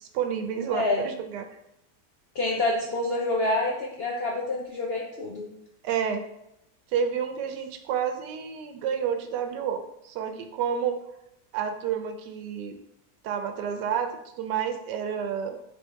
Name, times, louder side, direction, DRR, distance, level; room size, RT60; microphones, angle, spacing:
voice 1, 0.0-1.5 5.8-6.2 6.9-11.0 11.5-12.8 13.2-15.6, right 7 dB, 85° right, 6 dB, 1.2 m, -30 dB
voice 2, 0.5-1.1 2.3-5.5, left 2 dB, 65° left, -3 dB, 0.6 m, -27 dB
3.7 x 2.7 x 4.4 m, 0.82 s
omnidirectional pair, 1.8 m